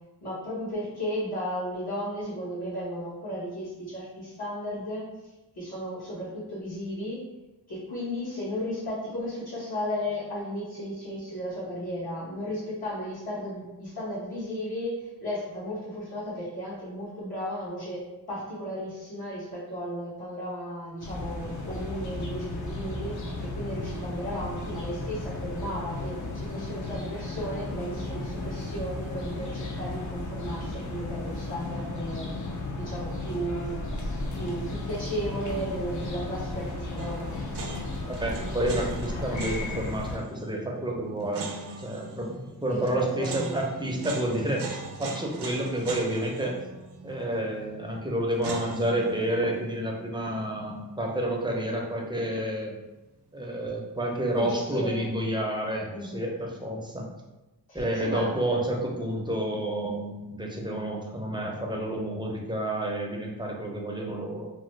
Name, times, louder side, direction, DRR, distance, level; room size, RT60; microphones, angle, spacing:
voice 1, 0.2-5.0 5.6-7.2 7.7-18.0 18.3-32.4 32.8-33.8 34.3-37.4 42.7-43.5 54.4-54.5 54.7-55.1 55.9-56.2 57.7-58.3, equal, 70° left, -11 dB, 1.4 m, -34 dB
sound 1, 21.0-40.2, left 2 dB, 50° left, 0.6 m, -34 dB
sound 2, 37.0-52.0 52.2-52.3 54.1-54.6, right 3 dB, 90° right, 0.5 m, -41 dB
voice 2, 38.1-41.5 41.8-46.6 47.0-52.7 53.3-57.1 57.7-64.5, right 1 dB, 10° right, -1 dB, 0.5 m, -30 dB
3.0 x 2.1 x 3.1 m, 1.0 s
wide cardioid pair, 100°, 39 cm